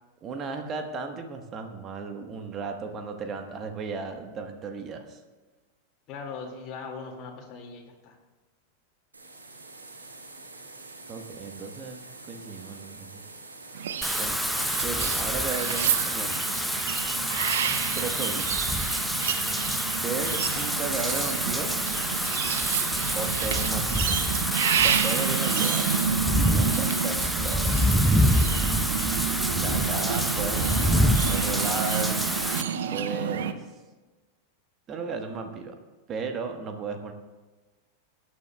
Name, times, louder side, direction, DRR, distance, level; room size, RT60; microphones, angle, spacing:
voice 1, 0.2-5.2 11.1-13.2 14.1-14.4 14.8-16.4 17.9-18.6 19.8-21.7 23.1-24.1 24.8-25.9 26.5-27.8 29.6-30.8 31.3-32.3 32.9-33.7 34.9-35.8 36.1-37.1, right 5 dB, 30° right, 6 dB, 1.2 m, -35 dB
voice 2, 6.1-8.2, left 5 dB, 35° left, 0 dB, 2.1 m, -39 dB
sound 1, 9.1-24.2, right 3 dB, 75° right, 1.5 m, -46 dB
sound 2, 13.8-33.5, right 8 dB, 60° right, 0.6 m, -29 dB
Wind / Rain, 14.0-32.6, equal, ahead, 0.7 m, -27 dB
20.0 x 9.6 x 2.3 m, 1.3 s
figure-of-eight pair, 90°, 0 cm